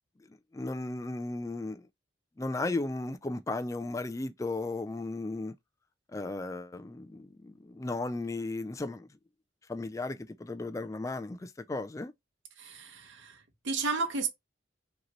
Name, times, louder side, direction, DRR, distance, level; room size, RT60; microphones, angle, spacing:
voice 1, 0.5-1.8 2.4-5.5 6.1-9.1 9.7-12.1, left 2 dB, 15° left, 0.3 m, -35 dB
voice 2, 12.6-13.4 13.6-14.3, right 4 dB, 80° right, 0.9 m, -32 dB
5.1 x 2.9 x 3.0 m
head